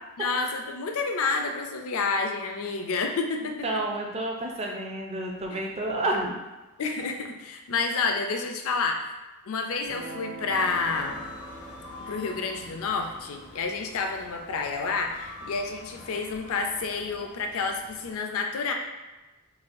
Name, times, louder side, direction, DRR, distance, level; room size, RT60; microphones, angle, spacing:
voice 1, 0.2-3.6 5.5-5.6 6.8-9.1 9.5-11.2 12.0-18.7, left 4 dB, 65° left, 4 dB, 0.4 m, -29 dB
voice 2, 3.6-6.4, right 2 dB, 30° right, 0 dB, 0.4 m, -30 dB
Guitar, 9.8-16.4, right 2 dB, 75° right, 1.2 m, -47 dB
sound 1, 10.5-18.2, left 2 dB, 85° left, 0.8 m, -45 dB
4.0 x 2.3 x 2.5 m, 1.1 s
head